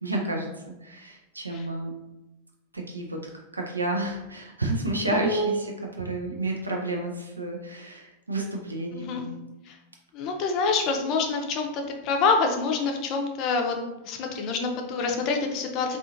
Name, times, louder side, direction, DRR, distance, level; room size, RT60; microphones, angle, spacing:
voice 1, 0.0-0.5 0.8-1.9 2.7-3.2 3.5-9.3, right 2 dB, 80° right, 1 dB, 0.5 m, -30 dB
voice 2, 5.1-5.7 8.9-9.3 9.7-9.8 10.1-13.8 14.0-16.0, left 4 dB, 40° left, 3 dB, 0.5 m, -26 dB
3.6 x 2.4 x 2.6 m, 0.99 s
figure-of-eight pair, 90°, 0 cm